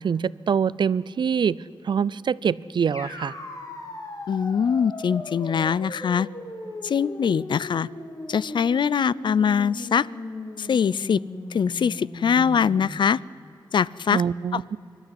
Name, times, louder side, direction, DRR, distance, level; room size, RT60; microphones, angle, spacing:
voice 1, 0.0-1.6 1.8-3.3 14.1-14.8, right 7 dB, 60° right, 21 dB, 0.4 m, -24 dB
sound 1, 2.9-12.8, left 2 dB, 40° left, 2.9 m, -38 dB
voice 2, 4.3-6.3 6.8-7.9 8.3-10.1 10.6-11.2 11.5-13.2 13.7-14.2 14.5-14.8, left 7 dB, 60° left, 22 dB, 0.4 m, -22 dB
26.0 x 12.5 x 9.9 m, 2.6 s
wide cardioid pair, 165°, 9 cm